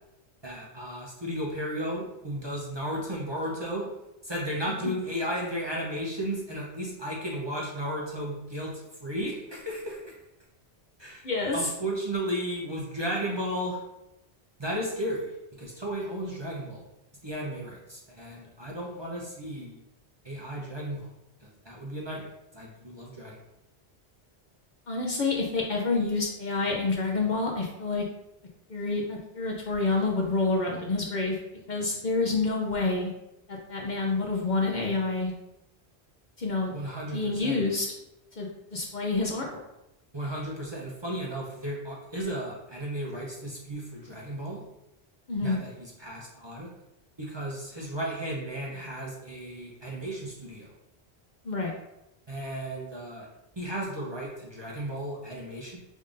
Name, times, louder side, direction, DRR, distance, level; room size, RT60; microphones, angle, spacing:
voice 1, 0.4-3.9 4.2-10.1 11.0-13.8 14.6-16.8 17.2-19.8 20.2-21.1 21.4-23.3 36.7-37.6 40.1-44.6 45.4-46.7 47.2-50.7 52.3-53.3 53.6-55.8, right 1 dB, 30° right, -4 dB, 0.7 m, -34 dB
voice 2, 11.2-11.6 24.9-28.0 28.7-31.4 31.7-33.1 33.5-35.3 36.4-36.7 37.1-37.9 38.4-39.5 45.3-45.6 51.4-51.7, left 3 dB, 50° left, -1 dB, 0.7 m, -28 dB
5.2 x 3.6 x 2.5 m, 0.90 s
omnidirectional pair, 1.1 m